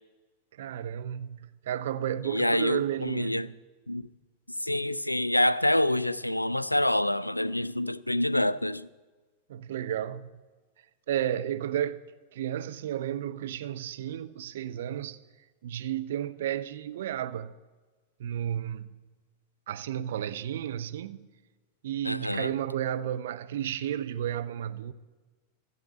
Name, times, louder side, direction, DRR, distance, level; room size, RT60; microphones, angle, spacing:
voice 1, 0.6-3.6 9.5-10.4 11.1-12.0 12.3-15.2 15.6-17.5 18.2-19.0 19.7-21.3 21.8-24.9, right 10 dB, 60° right, 0.6 m, -32 dB
voice 2, 2.3-3.5 3.9-4.0 4.6-8.9 22.0-22.5, left 1 dB, 85° left, 0.3 m, -27 dB
13.5 x 7.4 x 8.2 m
figure-of-eight pair, 90°, 0 cm